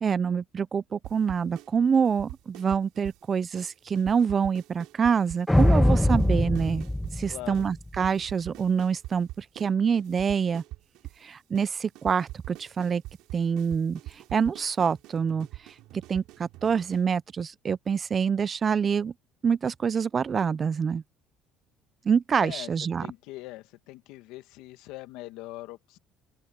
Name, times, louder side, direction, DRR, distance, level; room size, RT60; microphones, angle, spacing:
voice 1, 0.0-6.8 7.2-10.6 11.2-13.0 13.3-15.7 16.1-19.1 19.4-21.0 22.0-23.1, right 6 dB, 35° right, 0.7 m, -26 dB
sound 1, 1.0-1.7 1.9-3.2 3.5-3.7 4.0-7.2 7.5-7.7 7.9-9.7 9.9-11.2 11.5-11.7 12.0-17.0, right 18 dB, 75° right, 6.9 m, -43 dB
sound 2, 5.5-8.0, left 1 dB, 5° left, 0.7 m, -22 dB
voice 2, 7.3-7.7 22.4-22.7 23.0-26.0, left 18 dB, 80° left, 2.0 m, -41 dB
open air
supercardioid pair, 90°, 0 cm